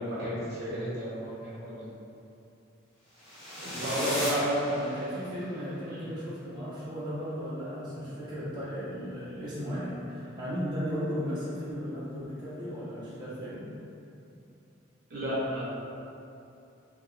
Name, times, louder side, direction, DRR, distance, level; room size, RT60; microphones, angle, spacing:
voice 1, 0.0-1.8 3.6-4.7 5.9-6.0 15.1-15.6, equal, 50° right, -9 dB, 0.7 m, -32 dB
sound 1, 3.2-5.4, equal, 60° left, 1.4 m, -36 dB
voice 2, 3.7-4.1 4.7-13.7, equal, 20° right, -11 dB, 0.9 m, -36 dB
3.5 x 2.9 x 2.4 m, 2.7 s
head